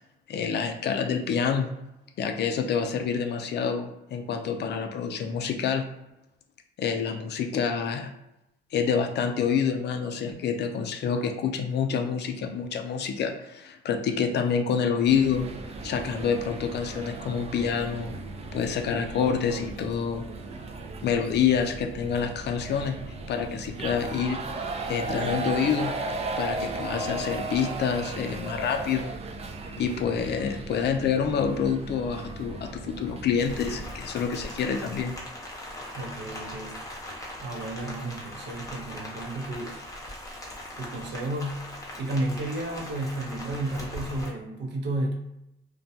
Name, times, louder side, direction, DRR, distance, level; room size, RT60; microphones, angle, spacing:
voice 1, 0.3-1.7 2.2-5.8 6.8-8.1 8.7-15.5 15.8-18.2 18.5-20.2 21.0-23.0 23.3-24.4 24.9-25.9 26.4-29.1 29.8-35.1, left 6 dB, 60° left, 5 dB, 0.4 m, -27 dB
sound 1, 15.1-33.9, right 3 dB, 30° right, 0.4 m, -36 dB
Rain, 33.4-44.3, left 1 dB, 15° left, 0.8 m, -40 dB
voice 2, 35.9-36.8 37.4-39.8 40.8-45.1, right 1 dB, 60° right, 0 dB, 0.7 m, -32 dB
2.2 x 2.2 x 2.7 m, 0.87 s
cardioid pair, 90°, 20 cm